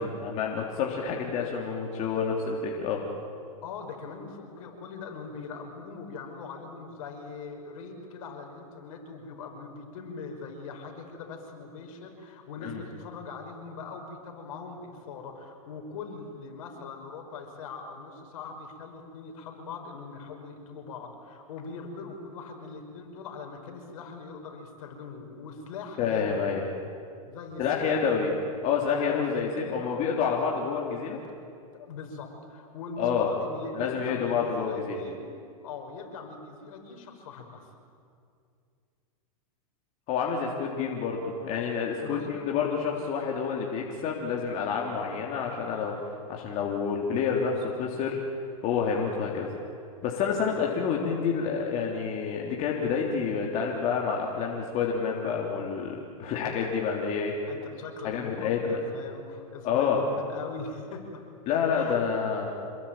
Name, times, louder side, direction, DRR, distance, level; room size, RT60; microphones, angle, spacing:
voice 1, 0.0-3.0 12.6-12.8 26.0-26.6 27.6-28.3 28.6-31.2 33.0-33.3 33.8-35.0 40.1-45.9 46.3-48.2 48.6-49.5 50.0-57.3 58.0-58.8 59.6-60.0 61.5-62.5, left 6 dB, 40° left, -1 dB, 3.4 m, -28 dB
voice 2, 3.6-26.5 27.2-28.1 29.0-29.2 29.6-30.1 31.7-35.2 35.6-37.7 42.0-42.4 50.5-50.6 57.5-61.2 61.7-62.0, left 4 dB, 65° left, 3 dB, 5.6 m, -41 dB
27.5 x 21.5 x 9.0 m, 2.4 s
hypercardioid pair, 135°, 19 cm